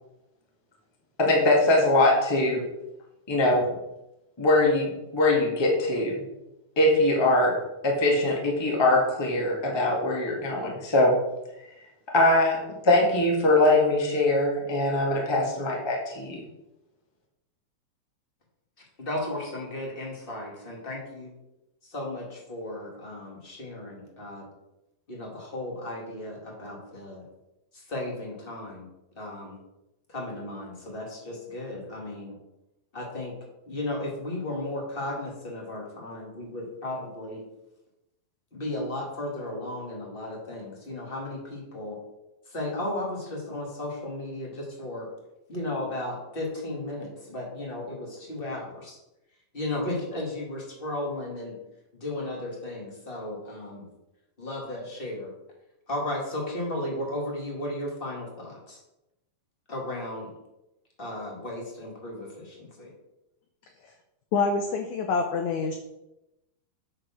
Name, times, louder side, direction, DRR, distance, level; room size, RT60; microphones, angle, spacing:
voice 1, 1.2-2.6 3.3-3.8 4.4-6.2 6.7-7.6 7.8-11.2 12.1-16.4, left 2 dB, 40° left, -2 dB, 0.3 m, -22 dB
voice 2, 19.0-21.3 21.9-24.4 25.1-27.2 27.9-28.8 29.2-29.6 30.1-32.3 32.9-33.3 33.7-37.4 38.5-42.0 42.5-45.1 45.5-49.0 49.5-51.5 52.0-53.8 54.4-55.3 55.9-58.8 59.7-60.3 61.0-62.9, left 1 dB, 20° left, -2 dB, 1.9 m, -34 dB
voice 3, 64.3-65.8, left 4 dB, 80° left, 5 dB, 1.7 m, -26 dB
8.7 x 5.1 x 6.1 m, 0.92 s
omnidirectional pair, 4.2 m